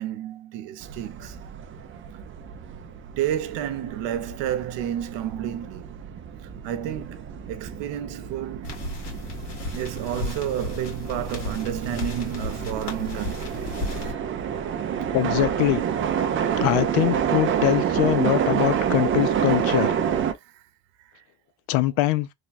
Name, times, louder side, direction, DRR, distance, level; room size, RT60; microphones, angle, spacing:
voice 1, 0.0-1.4 3.2-6.0 6.4-8.9 9.7-13.7 20.4-20.6 21.0-21.2, right 11 dB, 65° right, 0.8 m, -31 dB
sound 1, 0.8-20.3, right 8 dB, 30° right, 0.3 m, -28 dB
sound 2, 8.6-14.1, left 2 dB, 60° left, 1.8 m, -34 dB
voice 2, 15.1-15.8 16.6-19.9 21.7-22.3, left 16 dB, 75° left, 0.6 m, -23 dB
3.3 x 2.2 x 4.0 m
cardioid pair, 130°, 47 cm